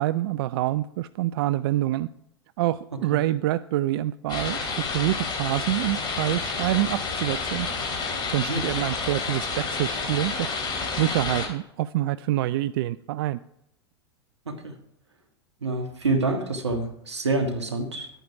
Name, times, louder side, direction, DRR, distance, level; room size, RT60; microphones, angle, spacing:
voice 1, 0.0-2.1 2.6-4.6 4.9-7.7 8.0-10.6 10.9-13.4, right 15 dB, 60° right, 16 dB, 0.4 m, -26 dB
sound 1, 4.3-11.5, left 4 dB, 30° left, 3.0 m, -30 dB
voice 2, 15.6-18.1, right 2 dB, 90° right, 6 dB, 1.6 m, -27 dB
11.0 x 9.0 x 4.7 m, 0.76 s
hypercardioid pair, 95°, 14 cm